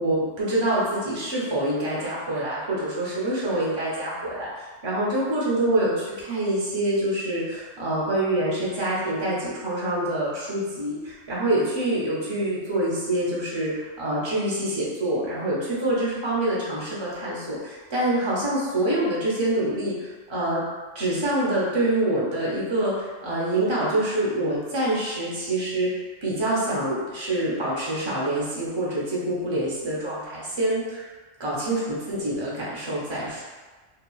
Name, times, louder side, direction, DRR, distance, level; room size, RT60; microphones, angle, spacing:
voice 1, 0.0-4.5 4.8-5.9 6.2-20.6 20.9-25.9 26.2-31.1 31.4-33.4, right 1 dB, 30° right, -7 dB, 0.6 m, -26 dB
2.9 x 2.4 x 2.3 m, 1.3 s
omnidirectional pair, 1.3 m